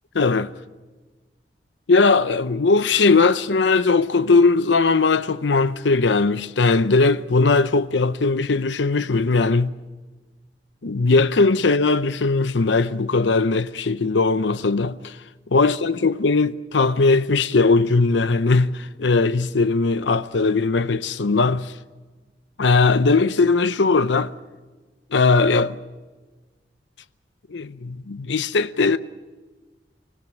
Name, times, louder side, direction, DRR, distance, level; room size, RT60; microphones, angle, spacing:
voice 1, 0.1-0.5 1.9-9.7 10.8-15.2 15.5-21.7 22.6-24.3 25.1-25.8 27.5-29.0, left 3 dB, 85° left, 0.7 m, -19 dB
25.5 x 17.0 x 8.9 m
head